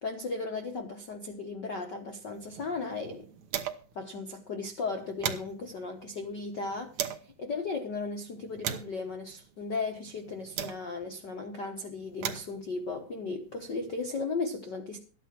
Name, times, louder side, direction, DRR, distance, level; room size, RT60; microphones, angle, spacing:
voice 1, 0.0-3.3 3.9-15.0, left 3 dB, 70° left, 1.0 m, -36 dB
sound 1, 2.2-4.0 4.4-4.5 4.8-7.3 8.0-11.2 11.9-14.1, right 9 dB, 60° right, 2.1 m, -39 dB
13.5 x 10.0 x 6.0 m
omnidirectional pair, 4.0 m